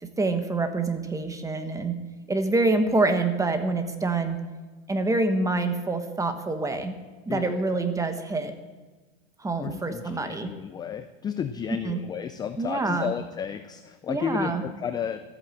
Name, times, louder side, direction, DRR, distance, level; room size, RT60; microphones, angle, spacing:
voice 1, 0.0-2.0 2.3-4.4 4.9-7.0 7.3-8.5 9.4-10.5 11.8-12.0 12.6-13.1 14.1-14.6, right 3 dB, 10° right, 7 dB, 1.2 m, -26 dB
voice 2, 7.3-7.8 9.6-15.2, left 7 dB, 15° left, 10 dB, 0.3 m, -33 dB
13.5 x 8.7 x 7.6 m, 1.3 s
supercardioid pair, 130°, 33 cm